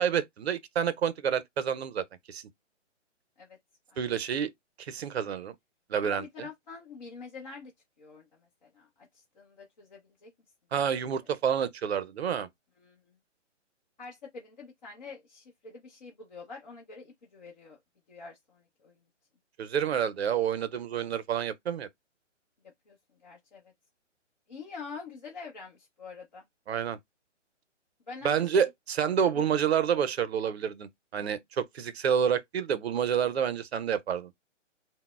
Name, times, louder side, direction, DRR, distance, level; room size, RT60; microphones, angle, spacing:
voice 1, 0.0-2.4 4.0-4.5 4.9-5.5 5.9-6.2 10.7-12.5 19.6-21.9 26.7-27.0 28.2-34.3, right 8 dB, 60° right, 0.5 m, -28 dB
voice 2, 3.9-4.2 6.0-7.7 8.0-10.3 12.8-13.0 14.0-17.8 18.1-19.0 22.9-23.0 23.2-23.7 24.5-26.4 28.1-28.7 29.3-29.5, left 5 dB, 35° left, 0.7 m, -46 dB
3.9 x 2.1 x 2.3 m
hypercardioid pair, 165°, 37 cm